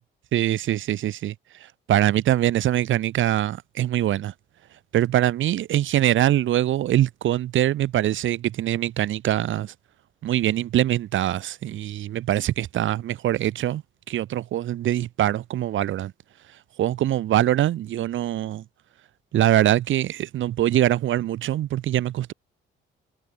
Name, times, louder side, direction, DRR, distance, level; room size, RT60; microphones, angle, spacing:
voice 1, 0.3-1.3 1.9-4.3 4.9-9.7 10.2-13.8 14.1-16.1 16.8-18.6 19.3-22.3, right 12 dB, 75° right, 3.7 m, -23 dB
cardioid pair, 90°, 20 cm